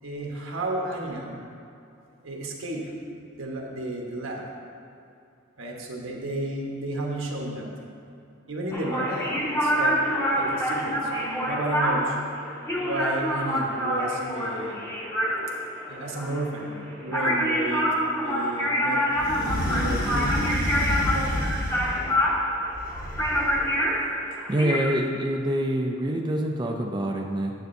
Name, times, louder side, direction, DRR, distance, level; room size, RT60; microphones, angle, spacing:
voice 1, 0.0-1.4 2.2-2.8 3.3-4.4 5.6-7.7 8.5-10.0 10.3-12.2 12.7-14.8 15.9-16.7 17.0-17.8 18.2-20.5 21.1-21.5, right 1 dB, 85° right, -1 dB, 1.2 m, -32 dB
sound 1, 8.7-24.9, equal, 15° left, 0.9 m, -26 dB
sound 2, 19.2-22.2 22.7-23.6, left 1 dB, 45° left, 0.9 m, -29 dB
voice 2, 24.5-27.5, right 1 dB, 20° right, 1 dB, 0.4 m, -26 dB
9.2 x 7.9 x 2.7 m, 2.6 s
head